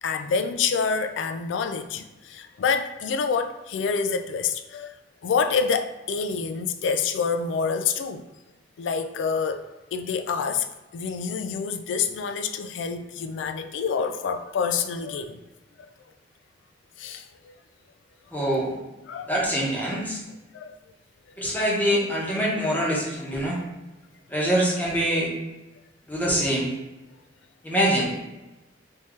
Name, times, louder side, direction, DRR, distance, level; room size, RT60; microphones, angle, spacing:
voice 1, 0.0-5.0 5.2-8.2 8.8-9.6 9.9-10.7 10.9-15.4 17.0-17.2 19.1-19.3 19.9-20.0 20.5-20.8, left 5 dB, 85° left, 8 dB, 0.3 m, -27 dB
voice 2, 18.3-18.7 19.3-20.2 21.4-23.6 24.3-25.3 26.1-26.7 27.6-28.1, equal, 10° left, -4 dB, 0.8 m, -24 dB
3.6 x 2.8 x 3.1 m, 1.0 s
head